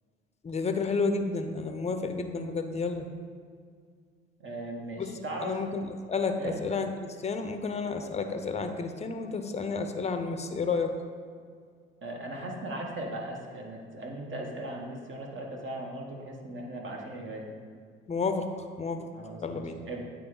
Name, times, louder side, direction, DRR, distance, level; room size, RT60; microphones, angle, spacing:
voice 1, 0.4-3.1 5.0-5.1 5.4-10.9 18.1-19.1 19.4-19.8, left 4 dB, 20° left, 7 dB, 0.6 m, -31 dB
voice 2, 4.4-5.6 6.4-6.5 12.0-17.4 19.1-20.0, right 1 dB, 40° right, 0 dB, 1.3 m, -38 dB
8.9 x 3.3 x 3.8 m, 2.1 s
hypercardioid pair, 55°, 30 cm